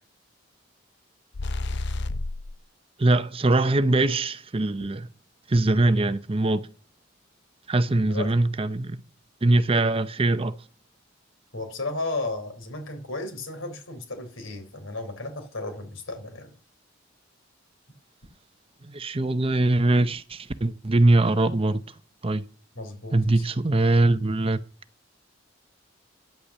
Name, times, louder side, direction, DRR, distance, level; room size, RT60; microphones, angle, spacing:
sound 1, 1.3-2.6, left 2 dB, 60° left, 0.6 m, -30 dB
voice 1, 3.0-5.1 5.5-6.7 7.7-9.0 9.4-10.5 18.8-21.8 22.2-22.5 23.1-24.6, right 2 dB, 30° right, 0.6 m, -22 dB
voice 2, 11.5-16.5 22.8-23.4, left 2 dB, 80° left, 3.6 m, -34 dB
10.0 x 8.3 x 7.1 m
head